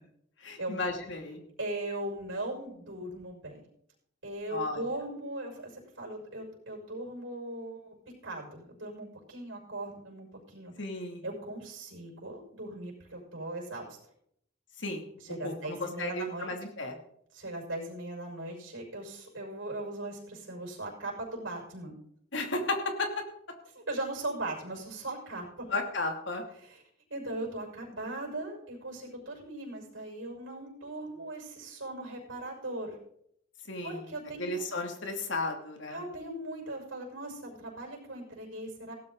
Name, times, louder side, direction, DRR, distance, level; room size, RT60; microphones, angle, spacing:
voice 1, 0.4-1.4 4.5-4.8 10.8-11.2 14.8-15.0 15.4-17.0 22.3-23.1 25.7-26.4 33.7-34.1 34.4-36.0, left 2 dB, 65° left, 3 dB, 2.8 m, -34 dB
voice 2, 1.6-3.6 4.2-8.0 8.2-10.7 11.2-14.0 15.3-16.5 17.3-21.9 23.7-25.7 26.6-26.8 27.1-33.0 33.8-34.7 35.9-38.9, right 1 dB, 75° right, -1 dB, 6.3 m, -39 dB
17.0 x 13.0 x 4.1 m, 0.71 s
head